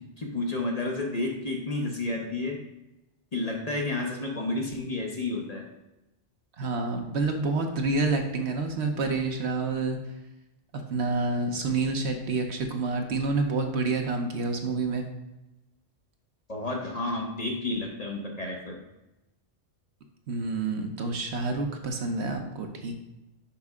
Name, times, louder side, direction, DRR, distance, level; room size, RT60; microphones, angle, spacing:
voice 1, 0.2-2.6 3.3-5.7 16.5-18.8, left 2 dB, 35° left, 0 dB, 0.8 m, -31 dB
voice 2, 6.6-10.0 10.7-15.0 20.3-23.0, right 3 dB, 65° right, 4 dB, 1.0 m, -28 dB
5.8 x 5.3 x 3.5 m, 0.97 s
omnidirectional pair, 1.3 m